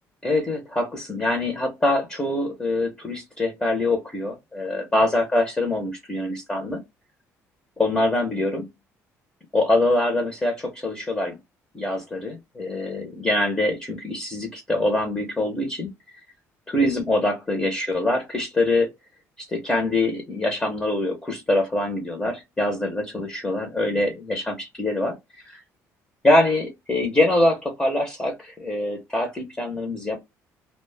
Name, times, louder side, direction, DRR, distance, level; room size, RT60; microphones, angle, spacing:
voice 1, 0.2-6.8 7.8-8.7 9.5-11.4 11.7-15.9 16.7-18.9 19.4-25.6 26.2-30.2, left 2 dB, 15° left, 0.6 m, -24 dB
2.1 x 2.0 x 3.1 m
cardioid pair, 130°, 6 cm